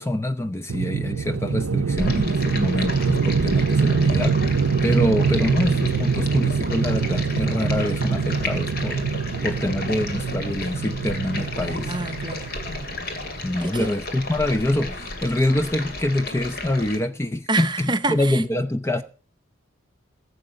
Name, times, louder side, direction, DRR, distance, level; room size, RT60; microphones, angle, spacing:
voice 1, 0.0-9.1 9.4-12.0 13.4-19.0, left 1 dB, 15° left, 0.6 m, -25 dB
sound 1, 0.7-12.9, right 5 dB, 90° right, 0.6 m, -24 dB
Stream, 2.0-17.0, left 2 dB, 50° left, 2.3 m, -33 dB
voice 2, 11.9-12.5 13.6-13.9 17.5-18.4, right 2 dB, 20° right, 0.7 m, -27 dB
15.0 x 7.9 x 6.4 m
head